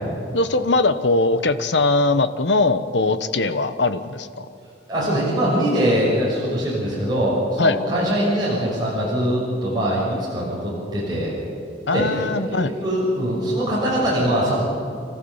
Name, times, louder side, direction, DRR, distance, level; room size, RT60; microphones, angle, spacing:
voice 1, 0.3-4.5 7.6-7.8 11.9-12.7, left 3 dB, 70° left, 11 dB, 1.1 m, -20 dB
voice 2, 4.9-11.3 11.9-12.2 12.5-14.5, equal, 25° right, -6 dB, 6.2 m, -22 dB
30.0 x 14.5 x 7.3 m, 2.6 s
head